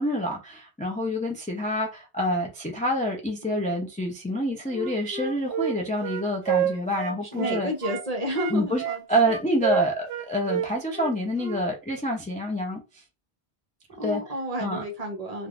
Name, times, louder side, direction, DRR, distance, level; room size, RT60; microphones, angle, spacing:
voice 1, 0.0-7.7 8.5-8.8 9.1-12.8 14.0-14.2 14.6-14.8, equal, 10° left, 0.3 m, -27 dB
Wind instrument woodwind instrument, 4.7-8.1 8.3-11.6, right 9 dB, 70° right, 0.8 m, -29 dB
voice 2, 7.1-9.3 14.0-15.5, equal, 40° right, 0.8 m, -31 dB
3.3 x 2.5 x 2.4 m
omnidirectional pair, 1.1 m